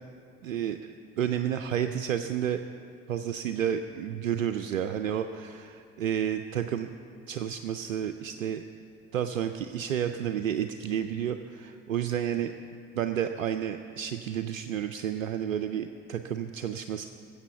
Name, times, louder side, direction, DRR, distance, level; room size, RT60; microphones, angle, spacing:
voice 1, 0.4-2.6 3.1-6.9 7.3-8.6 9.1-12.5 12.9-17.0, right 9 dB, 85° right, 8 dB, 0.5 m, -31 dB
15.5 x 7.7 x 6.8 m, 2.4 s
figure-of-eight pair, 65°, 39 cm